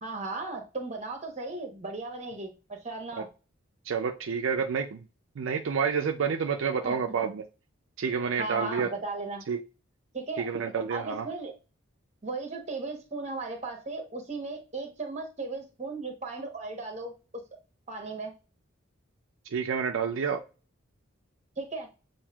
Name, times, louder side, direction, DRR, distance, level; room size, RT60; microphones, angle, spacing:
voice 1, 0.0-3.3 6.8-6.9 8.4-9.4 10.1-10.5 10.9-11.5 12.2-17.1 17.9-18.3 21.6-21.9, right 3 dB, 35° right, 4 dB, 1.0 m, -36 dB
voice 2, 3.9-5.1 5.4-7.4 8.0-8.9 9.5-9.6 10.4-11.3 19.5-20.4, right 6 dB, 70° right, 5 dB, 0.4 m, -29 dB
7.1 x 2.6 x 2.3 m, 0.33 s
head